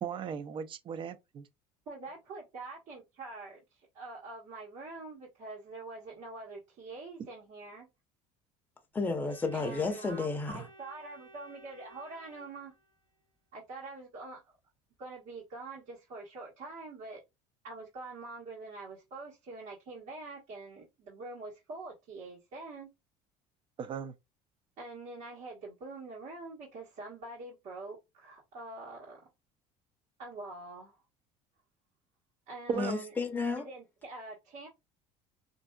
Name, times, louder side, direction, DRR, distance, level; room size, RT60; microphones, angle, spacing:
voice 1, 0.0-1.5 23.8-24.1 32.7-32.9, right 7 dB, 40° right, 0.5 m, -36 dB
voice 2, 1.9-7.9 9.5-12.7 13.5-14.5 15.0-17.2 17.6-22.9 24.8-29.3 30.2-31.0 32.5-33.1 33.6-34.7, right 3 dB, 65° right, 1.3 m, -45 dB
voice 3, 8.9-10.7 32.7-33.7, left 4 dB, 15° left, 0.6 m, -32 dB
Organ, 9.3-13.2, right 1 dB, 90° right, 0.8 m, -56 dB
3.5 x 2.6 x 2.2 m
supercardioid pair, 105°, 13 cm